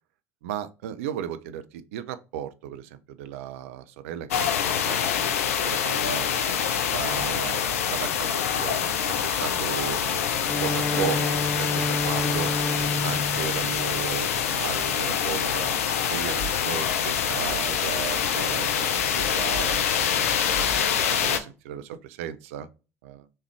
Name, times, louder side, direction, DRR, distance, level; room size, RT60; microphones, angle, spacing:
voice 1, 0.4-4.4 4.8-5.4 5.6-6.3 6.9-12.5 13.0-20.3 21.1-22.7 23.0-23.3, right 10 dB, 70° right, 0.4 m, -35 dB
sound 1, 4.3-21.4, left 8 dB, 80° left, 0.5 m, -25 dB
Bowed string instrument, 10.4-14.7, left 2 dB, 15° left, 0.4 m, -30 dB
3.5 x 3.2 x 3.2 m
hypercardioid pair, 65°, 8 cm